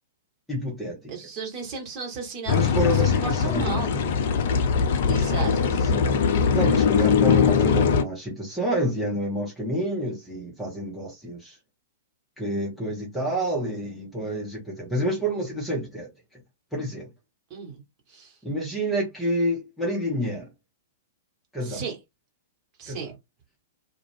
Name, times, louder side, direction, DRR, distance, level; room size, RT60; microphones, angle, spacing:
voice 1, 0.5-1.1 2.5-3.9 5.1-6.2 6.5-11.6 12.4-16.1 16.7-17.1 18.4-20.5 21.5-21.8 22.9-23.1, equal, ahead, 0.8 m, -28 dB
voice 2, 1.1-4.1 5.1-5.9 17.5-17.8 18.1-18.4 21.6-22.0 22.8-23.1, right 5 dB, 35° right, 1.2 m, -35 dB
sound 1, 2.5-8.0, left 6 dB, 50° left, 0.4 m, -21 dB
2.4 x 2.1 x 3.2 m
figure-of-eight pair, 105°, 0 cm